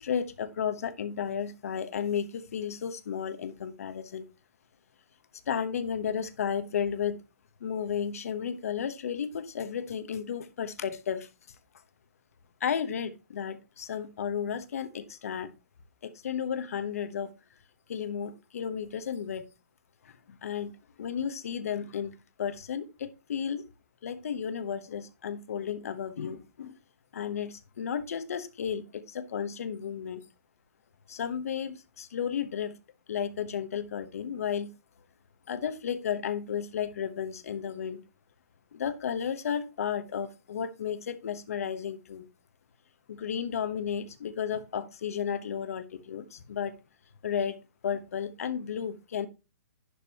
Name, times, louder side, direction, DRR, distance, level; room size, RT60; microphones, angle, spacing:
voice 1, 0.0-4.2 5.5-7.2 7.6-11.3 12.6-15.5 16.0-17.3 17.9-19.4 20.0-20.7 21.0-23.6 24.0-26.8 27.1-30.2 31.1-32.8 33.1-34.7 35.5-38.0 38.7-42.3 43.1-46.7 47.2-47.6 47.8-49.3, left 8 dB, 65° left, 1.1 m, -33 dB
11.0 x 5.2 x 2.9 m
hypercardioid pair, 160°, 9 cm